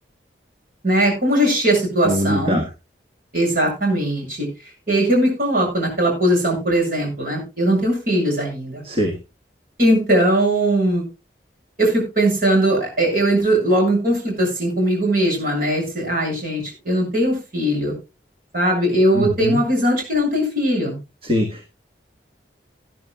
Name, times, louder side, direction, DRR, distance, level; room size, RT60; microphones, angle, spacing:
voice 1, 0.8-2.6 3.3-4.5 4.9-8.8 9.8-11.0 11.8-17.9 18.5-21.0, right 1 dB, 50° right, 0 dB, 7.5 m, -19 dB
voice 2, 2.1-2.6 8.8-9.1 19.1-19.6 21.3-21.7, equal, 30° right, 3 dB, 1.6 m, -22 dB
19.0 x 11.0 x 2.4 m, 0.28 s
head